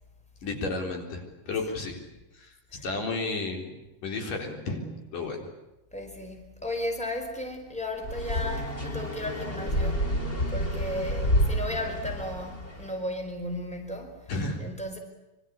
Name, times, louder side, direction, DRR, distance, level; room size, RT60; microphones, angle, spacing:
voice 1, 0.4-2.0 2.4-2.5 2.8-3.7 4.0-4.8 5.1-5.4 14.3-14.6, left 3 dB, 90° left, 3 dB, 5.7 m, -32 dB
voice 2, 5.9-10.1 10.5-14.3 14.6-15.0, left 1 dB, ahead, 4 dB, 4.6 m, -35 dB
sound 1, 8.0-12.9, equal, 20° left, 2.5 m, -29 dB
25.5 x 24.0 x 8.5 m, 0.96 s
omnidirectional pair, 3.7 m